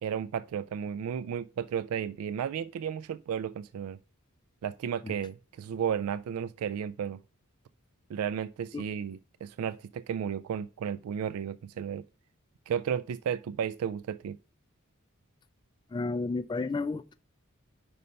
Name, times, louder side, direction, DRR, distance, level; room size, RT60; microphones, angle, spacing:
voice 1, 0.0-4.0 4.6-7.2 8.1-12.0 12.7-14.4, right 8 dB, 85° right, 0.3 m, -33 dB
voice 2, 15.9-17.2, left 3 dB, 20° left, 0.3 m, -31 dB
5.5 x 5.4 x 6.4 m
head